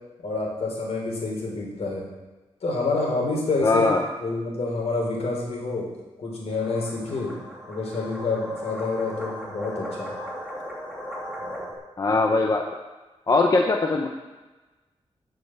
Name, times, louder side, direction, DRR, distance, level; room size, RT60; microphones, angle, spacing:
voice 1, 0.2-2.1 2.6-3.9 4.2-5.9 6.2-7.3 7.7-10.1 11.4-11.6, left 3 dB, 70° left, -2 dB, 3.6 m, -28 dB
voice 2, 3.6-4.0 12.0-12.6 13.3-14.1, left 3 dB, 35° left, 2 dB, 0.8 m, -21 dB
sound 1, 6.5-11.7, equal, 5° left, 2.7 m, -37 dB
15.0 x 5.5 x 6.1 m, 1.2 s
wide cardioid pair, 175°, 11 cm